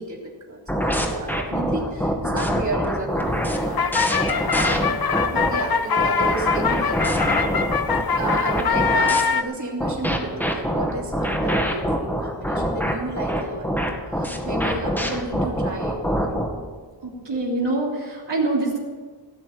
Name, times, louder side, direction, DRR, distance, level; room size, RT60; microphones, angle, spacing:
voice 1, 0.0-7.5 8.2-16.3, right 2 dB, 40° right, -3 dB, 3.4 m, -32 dB
sound 1, 0.7-5.5 6.0-9.2 9.8-16.5, equal, 5° left, 2.2 m, -24 dB
sound 2, 3.3-9.4, left 6 dB, 60° left, 0.8 m, -23 dB
voice 2, 17.0-18.8, right 2 dB, 80° right, -3 dB, 3.1 m, -25 dB
17.5 x 6.3 x 9.9 m, 1.5 s
wide cardioid pair, 90°, 42 cm